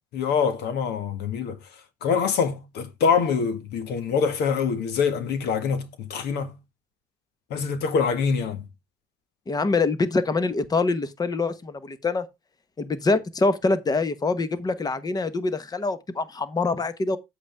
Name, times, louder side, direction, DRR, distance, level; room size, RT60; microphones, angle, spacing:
voice 1, 0.1-1.6 2.0-6.6 7.5-8.6, left 6 dB, 80° left, 1.6 m, -25 dB
voice 2, 9.5-12.2 12.8-17.2, left 3 dB, 25° left, 1.1 m, -25 dB
8.5 x 8.1 x 3.4 m
cardioid pair, 110°, 17 cm